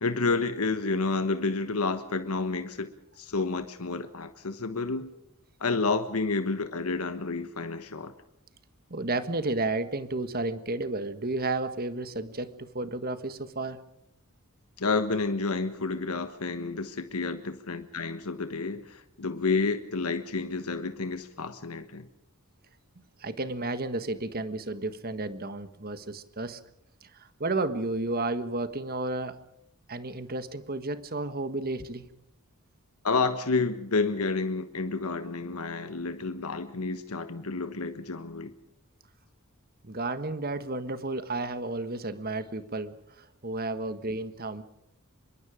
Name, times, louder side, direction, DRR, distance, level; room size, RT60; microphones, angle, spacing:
voice 1, 0.0-2.9 3.2-5.1 5.6-8.1 14.8-22.1 33.0-38.5, left 3 dB, 85° left, 9 dB, 1.3 m, -30 dB
voice 2, 8.9-13.8 23.2-26.6 27.0-29.4 29.9-32.0 39.8-44.6, right 2 dB, 45° right, 11 dB, 1.5 m, -32 dB
25.0 x 22.5 x 5.1 m, 0.80 s
head